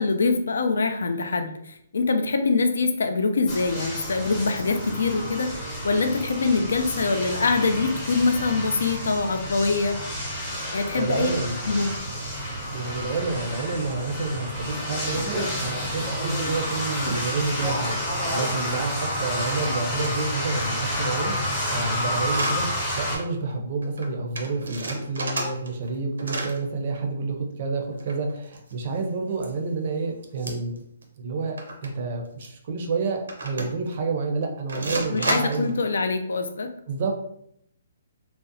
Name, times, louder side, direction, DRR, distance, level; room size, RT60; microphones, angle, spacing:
voice 1, 0.0-5.5 5.8-10.0 10.7-11.3 11.7-12.0 35.1-36.7, left 4 dB, 85° left, 7 dB, 0.4 m, -24 dB
sound 1, 3.5-23.2, equal, 10° left, 0.6 m, -30 dB
voice 2, 11.0-11.6 12.7-30.8 31.2-31.6 31.8-35.7 36.9-37.1, right 3 dB, 40° right, 3 dB, 0.4 m, -29 dB
sound 2, 22.3-22.6 23.1-23.3 23.5-23.6 23.8-24.1 24.3-25.9 26.2-26.6 27.9-29.0 29.4-29.5 30.4-30.8 31.0-31.1 31.6-31.9 32.4-32.5 33.3-33.9 34.7-35.7, right 2 dB, 90° right, 0.6 m, -31 dB
2.6 x 2.0 x 2.5 m, 0.74 s
hypercardioid pair, 170°, 0 cm